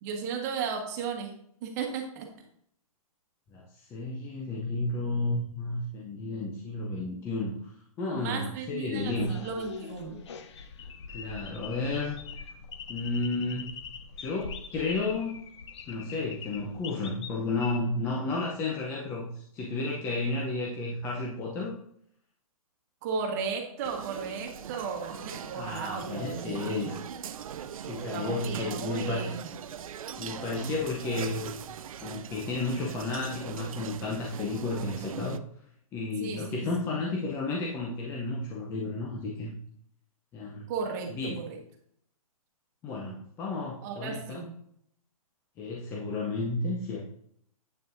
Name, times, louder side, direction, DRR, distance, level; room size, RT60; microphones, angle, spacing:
voice 1, 0.0-1.3 1.6-2.3 8.1-10.2 23.0-27.0 28.1-29.4 36.2-36.9 40.7-41.6 43.8-44.5, right 5 dB, 30° right, 2 dB, 1.4 m, -35 dB
voice 2, 3.5-7.6 8.0-9.4 11.1-12.2 12.9-13.7 14.2-15.4 15.9-21.7 25.5-27.0 27.8-29.3 30.2-31.5 32.0-35.4 35.9-39.5 40.3-40.7 41.1-41.4 42.8-44.4 45.6-47.0, left 2 dB, 10° left, -3 dB, 0.7 m, -32 dB
sound 1, 8.9-17.8, left 6 dB, 50° left, 0.8 m, -43 dB
sound 2, 23.8-35.4, right 9 dB, 65° right, 0.5 m, -41 dB
8.7 x 6.5 x 2.6 m, 0.68 s
hypercardioid pair, 165°, 19 cm